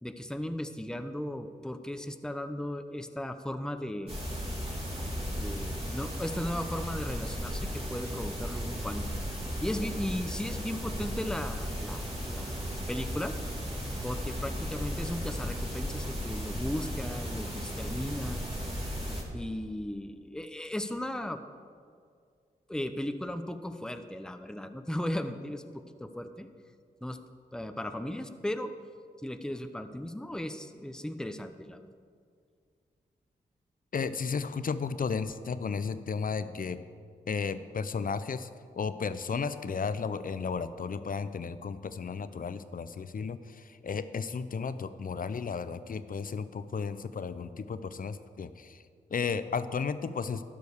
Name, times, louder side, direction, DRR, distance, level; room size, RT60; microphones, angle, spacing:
voice 1, 0.0-4.2 5.4-9.1 9.6-13.4 14.0-18.5 19.3-21.4 22.7-26.5 27.0-27.2 27.5-28.7 29.2-31.9, left 1 dB, 5° left, 9 dB, 0.7 m, -36 dB
sound 1, 4.1-19.2, equal, 35° right, 2.9 m, -35 dB
voice 2, 33.9-36.8 37.3-38.5 38.8-48.8 49.1-50.4, left 5 dB, 50° left, 13 dB, 0.6 m, -34 dB
12.5 x 5.3 x 6.5 m, 2.2 s
cardioid pair, 40°, 18 cm